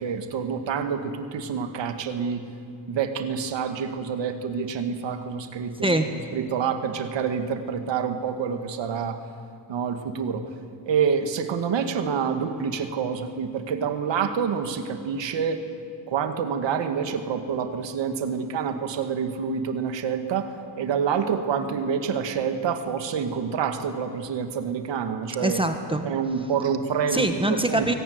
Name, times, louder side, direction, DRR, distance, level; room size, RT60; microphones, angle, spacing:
voice 1, 0.0-2.4 2.9-5.9 6.3-9.2 9.7-10.4 10.9-15.6 16.1-25.6 26.1-27.3 27.7-27.9, right 6 dB, 80° right, 8 dB, 2.1 m, -27 dB
voice 2, 5.8-6.1 25.4-26.1 27.1-27.9, right 1 dB, 10° right, 6 dB, 1.6 m, -24 dB
24.5 x 17.5 x 9.6 m, 2.3 s
cardioid pair, 105°, 43 cm